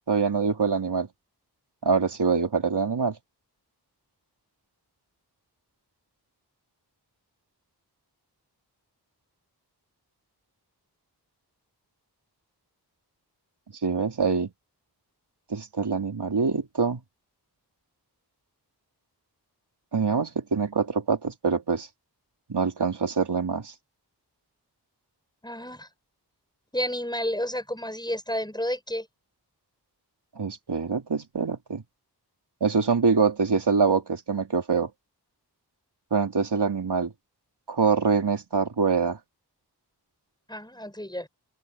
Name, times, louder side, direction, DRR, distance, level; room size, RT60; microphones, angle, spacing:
voice 1, 0.1-1.1 1.8-3.2 13.8-14.5 15.5-17.0 19.9-21.9 22.5-23.7 30.4-31.8 32.6-34.9 36.1-37.1 37.7-39.2, right 5 dB, 85° right, 3.5 m, -24 dB
voice 2, 25.4-25.9 26.7-29.1 40.5-41.3, equal, 10° left, 7.4 m, -31 dB
open air
wide cardioid pair, 60°, 39 cm